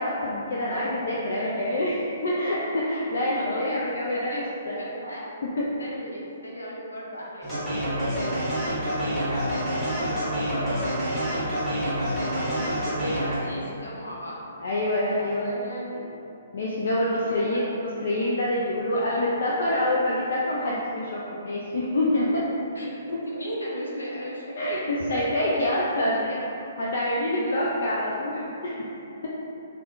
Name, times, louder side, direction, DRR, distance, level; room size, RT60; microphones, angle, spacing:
voice 1, 0.0-4.9 5.6-5.9 14.6-15.5 16.5-17.6 18.0-22.4 24.6-26.4 26.8-28.8 29.2-29.3, left 1 dB, 60° left, -5 dB, 0.4 m, -26 dB
voice 2, 3.3-3.8 4.1-5.3 5.8-14.4 15.1-16.2 17.1-17.7 19.1-19.8 22.7-24.8 25.3-26.4 27.6-27.9, equal, 80° left, -4 dB, 0.8 m, -37 dB
sound 1, 7.4-13.4, equal, 15° left, 1.3 m, -27 dB
3.5 x 2.3 x 3.8 m, 3.0 s
figure-of-eight pair, 125°, 0 cm